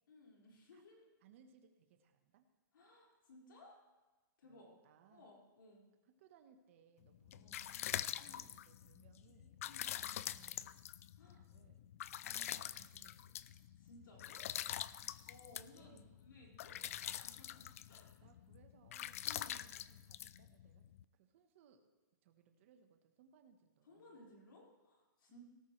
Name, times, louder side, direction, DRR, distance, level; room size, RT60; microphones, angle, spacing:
voice 1, 0.1-1.1 2.7-3.8 4.4-4.8 5.1-5.9 7.3-7.6 8.2-8.5 9.6-10.0 11.2-11.4 13.8-14.9 15.3-18.1 19.2-19.7 23.9-25.5, left 2 dB, 80° left, -2 dB, 5.3 m, -61 dB
voice 2, 1.2-2.5 4.4-5.3 6.2-7.9 8.2-10.8 11.3-11.8 12.3-13.7 15.0-15.2 15.5-16.1 18.2-20.9 21.1-21.9 22.2-24.3 25.3-25.5, right 8 dB, 40° right, 6 dB, 1.3 m, -67 dB
sound 1, 7.1-21.0, left 11 dB, 45° left, 0.3 m, -45 dB
17.5 x 13.5 x 3.3 m, 1.2 s
hypercardioid pair, 170°, 11 cm